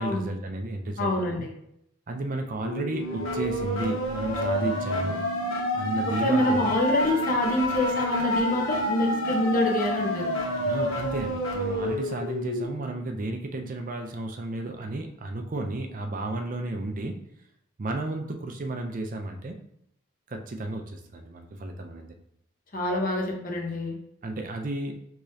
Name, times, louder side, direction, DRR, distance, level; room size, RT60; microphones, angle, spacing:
voice 1, 0.0-1.5 2.1-5.2 5.7-6.7 10.7-17.2 17.8-19.6 20.3-22.1 24.2-24.9, right 2 dB, 40° right, 4 dB, 0.5 m, -33 dB
voice 2, 1.0-1.5 6.2-10.3 22.7-24.0, left 1 dB, 40° left, 1 dB, 0.9 m, -26 dB
sound 1, 2.6-12.6, equal, 75° left, 1.0 m, -29 dB
5.0 x 3.6 x 2.7 m, 0.74 s
head